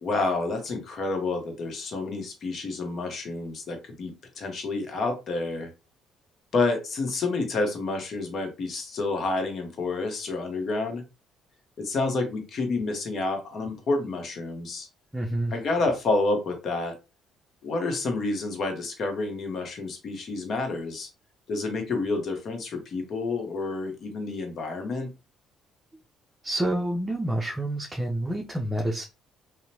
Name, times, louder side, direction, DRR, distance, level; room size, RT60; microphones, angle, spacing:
voice 1, 0.0-5.7 6.5-11.0 11.8-14.9 15.5-17.0 17.6-21.1 21.5-25.1, left 3 dB, 55° left, 4 dB, 0.9 m, -29 dB
voice 2, 15.1-15.5 26.4-29.0, right 1 dB, 15° right, 1 dB, 0.5 m, -28 dB
2.8 x 2.1 x 2.7 m, 0.28 s
supercardioid pair, 65°, 0 cm